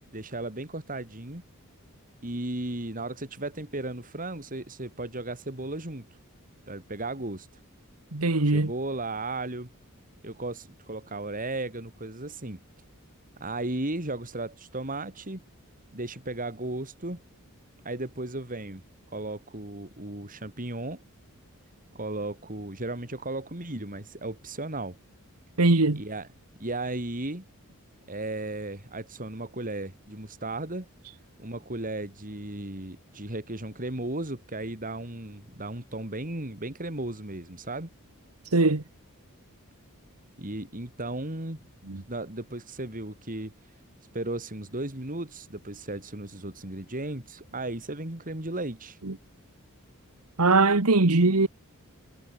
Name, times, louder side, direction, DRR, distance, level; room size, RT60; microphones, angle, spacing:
voice 1, 0.1-1.4 2.2-6.1 6.7-7.5 8.5-9.7 10.2-12.6 13.4-15.4 15.9-17.2 17.9-18.8 19.1-21.0 21.9-25.0 26.0-26.3 26.6-27.5 28.1-30.9 31.4-37.9 40.4-41.6 42.1-43.5 44.1-49.0, right 2 dB, 40° right, 3.5 m, -35 dB
voice 2, 8.1-8.7 25.6-26.0 38.5-38.8 41.9-42.0 50.4-51.5, right 3 dB, 85° right, 1.6 m, -21 dB
head